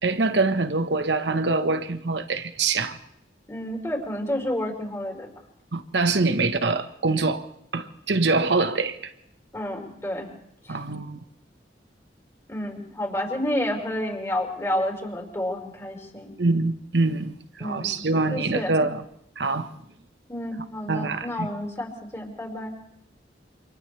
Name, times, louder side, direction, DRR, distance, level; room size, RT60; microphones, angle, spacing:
voice 1, 0.0-3.0 5.7-7.5 7.7-9.1 10.7-11.2 16.4-19.1 19.4-19.7 20.9-21.5, right 3 dB, 80° right, 1.3 m, -24 dB
voice 2, 3.5-5.3 9.5-10.3 10.7-10.8 12.5-16.3 17.6-18.7 20.3-22.8, left 1 dB, 15° left, 5.0 m, -30 dB
28.5 x 27.5 x 3.4 m
head